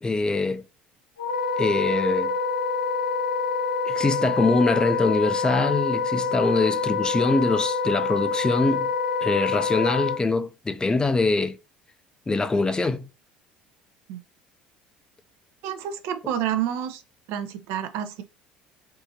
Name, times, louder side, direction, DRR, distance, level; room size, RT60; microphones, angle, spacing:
voice 1, 0.0-0.6 1.6-2.3 3.8-8.9 9.2-11.6 12.3-13.1, left 3 dB, 15° left, 0.5 m, -23 dB
Wind instrument woodwind instrument, 1.2-10.2, left 5 dB, 85° left, 0.5 m, -26 dB
voice 2, 15.6-17.0 17.3-18.2, right 10 dB, 65° right, 0.5 m, -29 dB
3.6 x 2.6 x 2.8 m
hypercardioid pair, 65°, 5 cm